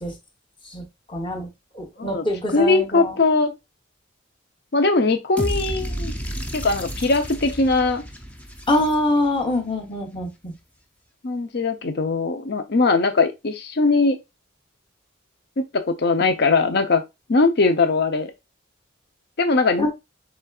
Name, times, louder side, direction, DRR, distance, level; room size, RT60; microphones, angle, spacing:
voice 1, 0.7-1.5 1.7-3.2 8.7-10.5 19.8-19.9, left 1 dB, 25° left, 1.0 m, -24 dB
voice 2, 2.5-3.5 4.7-6.1 6.5-8.0 11.2-14.2 15.6-17.0 17.3-18.3 19.4-19.9, left 3 dB, 55° left, 0.6 m, -20 dB
sound 1, 5.4-9.5, equal, 5° left, 0.5 m, -31 dB
5.1 x 3.3 x 2.3 m
head